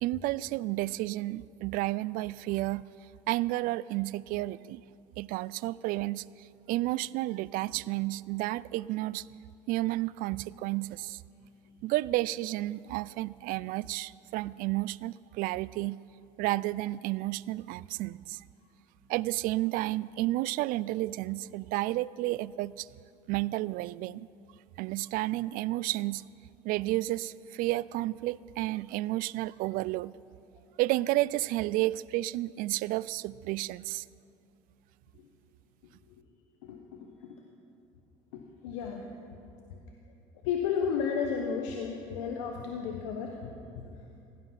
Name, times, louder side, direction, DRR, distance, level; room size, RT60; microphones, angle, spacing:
voice 1, 0.0-2.8 3.3-4.8 5.2-6.2 6.7-9.2 9.7-11.2 11.8-16.0 16.4-18.4 19.1-22.9 23.3-24.3 24.8-26.2 26.6-30.2 30.8-34.0, right 17 dB, 65° right, 21 dB, 0.4 m, -31 dB
voice 2, 36.6-37.4 38.3-39.1 40.4-43.9, left 6 dB, 80° left, 2 dB, 1.2 m, -33 dB
16.5 x 12.0 x 5.9 m, 2.6 s
hypercardioid pair, 65°, 16 cm